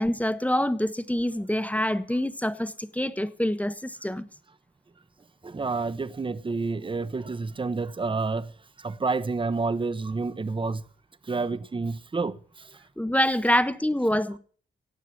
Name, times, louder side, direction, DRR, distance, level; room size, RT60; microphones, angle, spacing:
voice 1, 0.0-4.3 13.0-14.4, left 1 dB, 5° left, 0.8 m, -26 dB
voice 2, 5.4-8.5 8.8-10.8 11.3-12.7, right 4 dB, 25° right, 0.8 m, -29 dB
16.5 x 8.9 x 6.0 m
wide cardioid pair, 110°, 20 cm